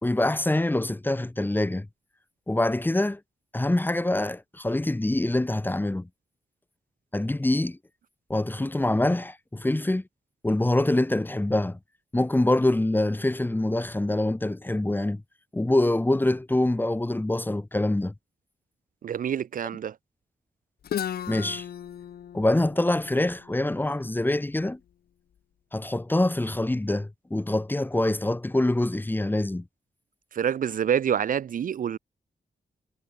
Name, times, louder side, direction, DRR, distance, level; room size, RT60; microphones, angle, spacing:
voice 1, 0.0-1.9 2.5-3.2 3.5-6.1 7.1-7.8 8.3-10.0 10.4-11.8 12.1-15.2 15.5-18.1 21.3-21.7 22.3-24.8 25.7-29.7, left 1 dB, 10° left, 1.0 m, -25 dB
voice 2, 19.0-20.0 30.3-32.0, right 9 dB, 60° right, 0.4 m, -27 dB
Guitar, 20.8-24.6, left 9 dB, 75° left, 0.6 m, -36 dB
wide cardioid pair, 95°, 16 cm